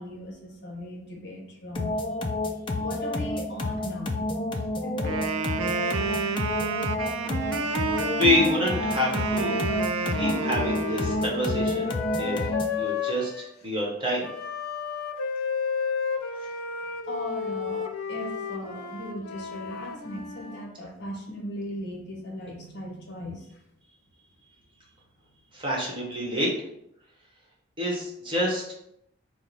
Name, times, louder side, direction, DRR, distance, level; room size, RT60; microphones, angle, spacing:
voice 1, 0.0-1.9 2.7-4.3 4.8-5.3 17.1-23.5, equal, 50° left, 0 dB, 0.9 m, -37 dB
sound 1, 1.8-12.8, left 1 dB, 25° left, 0.3 m, -29 dB
Wind instrument woodwind instrument, 5.0-11.3, right 5 dB, 75° right, 0.3 m, -30 dB
Wind instrument woodwind instrument 2, 7.7-13.5 14.2-20.7, left 6 dB, 85° left, 0.5 m, -33 dB
voice 2, 8.2-9.6 10.1-11.9 12.2-12.5 12.8-14.3 25.5-26.5 27.8-28.7, left 1 dB, 25° right, -3 dB, 0.9 m, -27 dB
4.6 x 2.0 x 3.9 m, 0.76 s
head